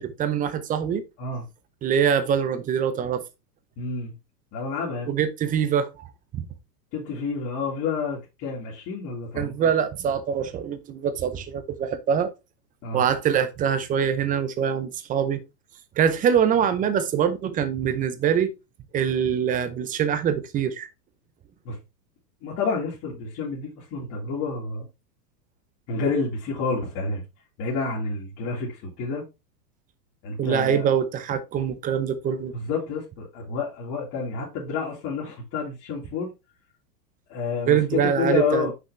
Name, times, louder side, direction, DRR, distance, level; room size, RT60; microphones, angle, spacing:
voice 1, 0.0-1.0 1.8-3.2 5.1-6.1 6.4-6.5 9.3-12.3 12.9-15.4 16.0-18.5 18.9-20.9 30.4-32.5 37.7-38.7, right 8 dB, 15° right, 0.6 m, -24 dB
voice 2, 3.8-4.2 4.5-5.1 6.9-9.7 12.8-13.0 21.6-21.8 22.4-24.9 25.9-27.2 27.6-29.2 30.2-30.9 32.5-36.3 37.3-38.7, left 4 dB, 35° left, 2.5 m, -29 dB
6.1 x 5.5 x 3.3 m
hypercardioid pair, 130°, 49 cm